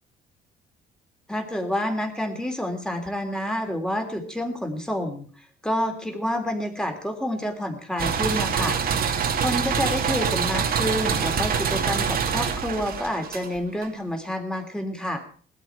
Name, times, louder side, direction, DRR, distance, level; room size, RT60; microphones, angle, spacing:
voice 1, 1.3-5.3 5.6-8.8 9.4-15.2, left 1 dB, 5° left, 4 dB, 3.2 m, -28 dB
sound 1, 8.0-13.9, right 7 dB, 50° right, 2.1 m, -25 dB
20.0 x 13.0 x 4.6 m, 0.43 s
cardioid pair, 150°, 20 cm